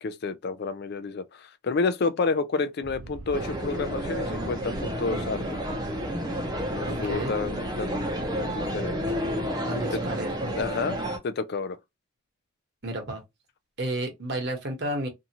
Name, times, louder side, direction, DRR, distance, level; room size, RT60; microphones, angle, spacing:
voice 1, 0.0-5.6 6.7-9.0 9.9-10.0 10.5-11.0 11.2-11.8, left 4 dB, 50° left, 0.3 m, -30 dB
sound 1, 2.8-9.5, right 2 dB, 70° right, 0.5 m, -41 dB
sound 2, 3.3-11.2, equal, 20° right, 0.5 m, -31 dB
voice 2, 6.8-7.3 9.7-10.5 12.8-13.2 13.8-15.1, right 1 dB, 50° right, 1.0 m, -32 dB
2.7 x 2.3 x 2.8 m
head